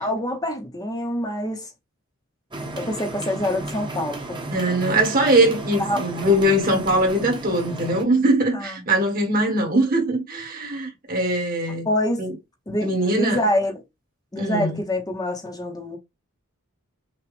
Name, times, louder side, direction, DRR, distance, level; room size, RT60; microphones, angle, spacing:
voice 1, 0.0-1.7 2.7-4.4 5.8-6.0 8.5-8.8 11.8-12.2 12.7-13.8 14.3-16.0, left 1 dB, 20° left, 0.9 m, -26 dB
sound 1, 2.5-8.0, right 2 dB, 20° right, 1.1 m, -33 dB
voice 2, 4.5-11.9 12.2-12.3 12.8-13.4 14.4-14.8, right 1 dB, 45° right, 1.7 m, -21 dB
6.0 x 2.4 x 3.3 m
head